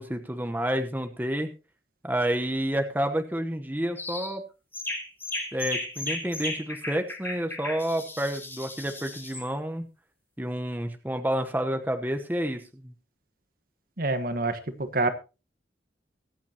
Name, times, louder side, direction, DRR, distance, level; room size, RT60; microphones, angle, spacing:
voice 1, 0.0-1.5 2.0-4.4 5.5-9.9 10.4-12.9, right 1 dB, 10° right, 6 dB, 1.0 m, -29 dB
sound 1, 4.0-4.3 4.7-9.5, left 2 dB, 10° left, 4.6 m, -35 dB
voice 2, 14.0-15.1, right 2 dB, 55° right, 9 dB, 1.3 m, -27 dB
23.0 x 8.2 x 2.9 m, 0.31 s
head